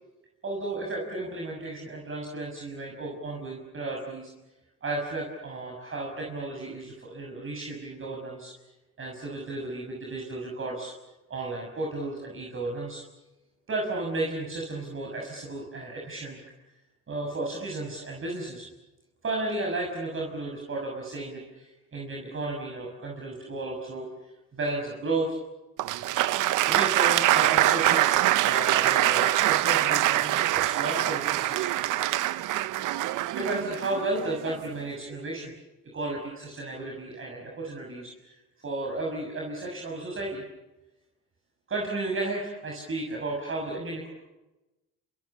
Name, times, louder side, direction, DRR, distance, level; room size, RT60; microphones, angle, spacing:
voice 1, 0.4-4.3 4.8-8.5 9.0-10.9 11.3-13.0 13.7-16.4 17.1-18.7 19.2-24.1 24.5-25.4 26.3-28.0 28.4-31.7 33.4-35.5 35.9-38.4 38.6-40.4 41.7-44.1, right 2 dB, 45° right, -1 dB, 6.4 m, -33 dB
Applause, 25.8-34.7, right 14 dB, 85° right, 0.9 m, -24 dB
27.5 x 27.0 x 7.2 m, 1.0 s
cardioid pair, 90°, 30 cm